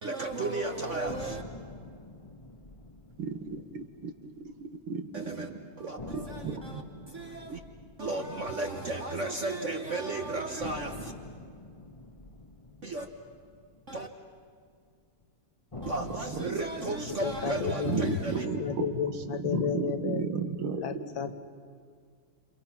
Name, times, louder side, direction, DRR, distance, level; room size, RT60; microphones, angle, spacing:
voice 1, 0.0-1.4 5.1-5.5 5.8-7.6 8.0-11.1 12.8-13.1 13.9-14.1 15.8-18.5, right 2 dB, 40° right, 1.3 m, -34 dB
sound 1, 1.0-5.1 5.4-5.5 6.0-10.1 10.6-15.0 15.7-20.1, left 2 dB, 20° left, 1.2 m, -47 dB
voice 2, 3.2-4.3 4.6-5.6 6.1-6.8 17.9-18.9 19.3-20.8, right 5 dB, 80° right, 2.5 m, -34 dB
voice 3, 17.1-18.1 18.6-20.2 20.8-21.3, left 7 dB, 70° left, 1.9 m, -31 dB
29.0 x 27.5 x 6.0 m
omnidirectional pair, 2.3 m